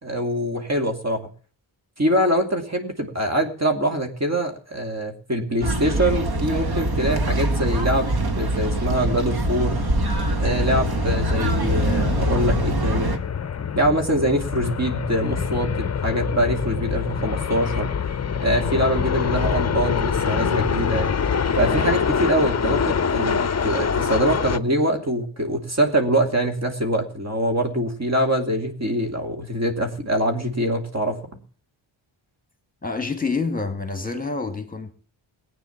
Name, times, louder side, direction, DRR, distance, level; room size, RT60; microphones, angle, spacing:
voice 1, 0.0-1.2 2.0-9.8 10.4-13.1 13.7-17.9 18.4-21.1 21.6-31.4, right 1 dB, 35° right, 2.8 m, -24 dB
sound 1, 5.6-13.2, right 1 dB, 50° right, 2.1 m, -23 dB
sound 2, 8.0-24.6, left 6 dB, 35° left, 0.7 m, -26 dB
voice 2, 32.8-34.9, left 4 dB, 20° left, 2.3 m, -27 dB
19.0 x 9.3 x 7.4 m
wide cardioid pair, 145°, 47 cm